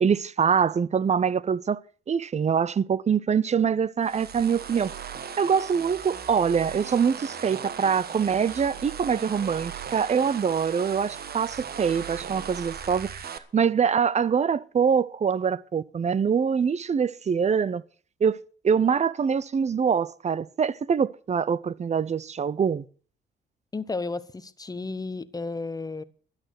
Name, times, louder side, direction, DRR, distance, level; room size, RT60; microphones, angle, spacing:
voice 1, 0.0-1.8 2.1-4.9 5.4-13.1 13.5-17.8 18.2-18.4 18.6-22.8, right 6 dB, 35° right, 0.7 m, -24 dB
sound 1, 4.0-13.4, right 7 dB, 50° right, 1.4 m, -38 dB
voice 2, 23.7-26.0, left 3 dB, 20° left, 1.0 m, -33 dB
12.5 x 11.5 x 6.0 m
cardioid pair, 90°, 20 cm